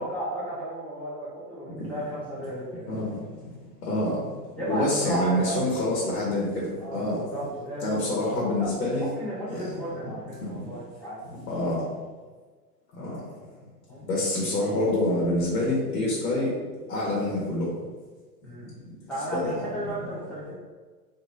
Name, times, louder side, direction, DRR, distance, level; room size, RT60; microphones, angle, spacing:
voice 1, 0.0-3.1 4.6-5.7 6.8-8.0 8.6-8.7 9.0-11.2 13.9-14.0 18.4-18.7 19.1-20.6, right 1 dB, 5° left, -10 dB, 1.1 m, -34 dB
voice 2, 2.9-3.5 3.8-4.2 4.7-7.2 7.8-9.0 9.5-9.7 10.4-10.7 11.5-11.8 13.0-13.2 14.1-16.5 16.9-17.7 18.8-18.9 19.3-19.6, left 1 dB, 75° left, -5 dB, 1.3 m, -27 dB
3.0 x 3.0 x 2.6 m, 1.4 s
hypercardioid pair, 115°, 48 cm